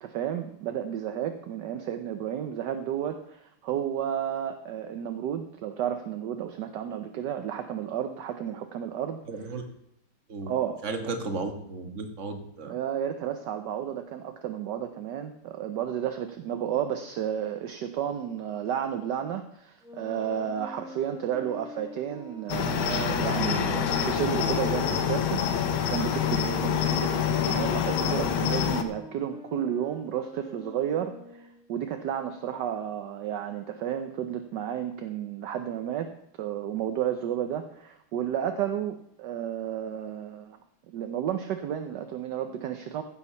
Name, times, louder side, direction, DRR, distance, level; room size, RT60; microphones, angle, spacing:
voice 1, 0.0-9.6 10.5-10.8 12.7-36.1 36.4-40.6 40.9-43.0, right 9 dB, 65° right, 7 dB, 1.2 m, -32 dB
voice 2, 9.3-9.6 10.3-10.5 10.8-12.7, right 3 dB, 40° right, 5 dB, 1.5 m, -34 dB
sound 1, 19.8-25.4 26.1-31.7, left 1 dB, 5° right, 0.6 m, -44 dB
Cricket, 22.5-28.8, left 8 dB, 70° left, 1.7 m, -26 dB
15.5 x 6.4 x 5.7 m, 0.79 s
omnidirectional pair, 2.4 m